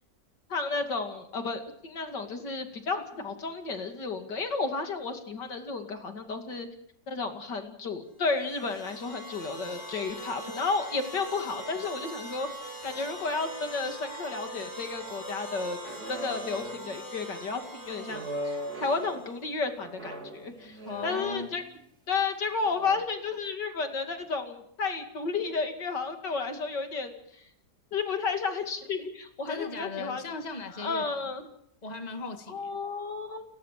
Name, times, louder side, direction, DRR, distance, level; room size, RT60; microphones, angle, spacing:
voice 1, 0.5-6.7 7.1-15.8 16.1-21.6 22.1-27.4 27.9-30.2 30.8-31.5 32.5-33.4, left 4 dB, 75° left, 6 dB, 3.1 m, -32 dB
sound 1, 8.2-19.5, right 1 dB, 40° left, 7.2 m, -42 dB
sound 2, 15.8-17.0 17.9-19.3 19.8-21.8 22.7-23.0, right 1 dB, 60° right, 3.8 m, -39 dB
voice 2, 20.8-21.5 29.5-31.3 31.8-32.7, left 4 dB, 25° left, 6 dB, 2.1 m, -38 dB
30.0 x 14.5 x 7.6 m, 0.71 s
omnidirectional pair, 1.9 m